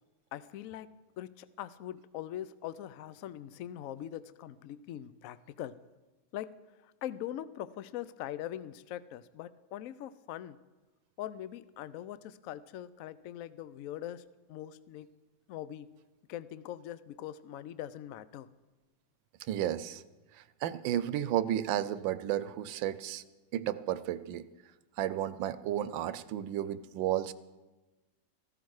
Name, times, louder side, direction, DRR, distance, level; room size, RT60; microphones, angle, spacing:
voice 1, 0.3-5.8 6.3-6.5 6.8-10.6 11.2-15.1 15.5-15.9 16.3-18.5, left 12 dB, 80° left, 16 dB, 0.7 m, -42 dB
voice 2, 19.5-20.0 20.6-23.2 23.5-24.4 25.0-27.3, right 11 dB, 80° right, 15 dB, 1.3 m, -32 dB
14.5 x 14.0 x 4.8 m, 1.1 s
omnidirectional pair, 2.1 m